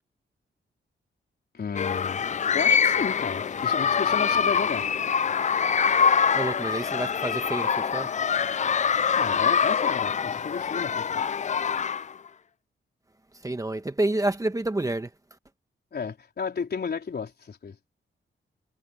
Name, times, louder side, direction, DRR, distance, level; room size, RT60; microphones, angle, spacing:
voice 1, 1.5-2.3 2.5-4.9 9.1-11.2 15.9-17.8, left 5 dB, 50° left, 4.1 m, -32 dB
sound 1, 1.8-12.3, left 6 dB, 35° left, 0.4 m, -24 dB
voice 2, 6.3-8.1 13.4-15.1, right 2 dB, 15° right, 1.6 m, -28 dB
wide cardioid pair, 115°, 21 cm